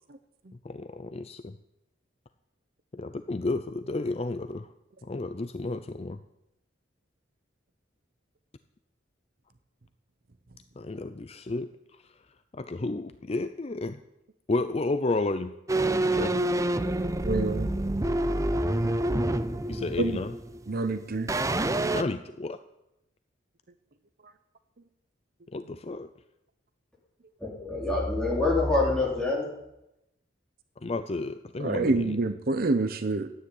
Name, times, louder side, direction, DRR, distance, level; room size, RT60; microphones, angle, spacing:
voice 1, 0.6-1.6 2.9-4.7 5.0-6.2 10.8-11.7 12.5-14.0 14.5-15.5 16.1-16.4 19.7-20.3 21.9-22.6 25.5-26.1 30.8-32.2, left 2 dB, 30° left, 0.5 m, -31 dB
sound 1, 15.7-20.9 21.3-22.0, right 1 dB, 15° right, 0.6 m, -27 dB
voice 2, 17.2-17.7 20.0-20.2 20.7-21.3 31.6-33.3, right 3 dB, 50° right, 0.8 m, -27 dB
voice 3, 27.4-29.5, left 2 dB, 5° left, 4.4 m, -26 dB
13.5 x 9.5 x 9.8 m
head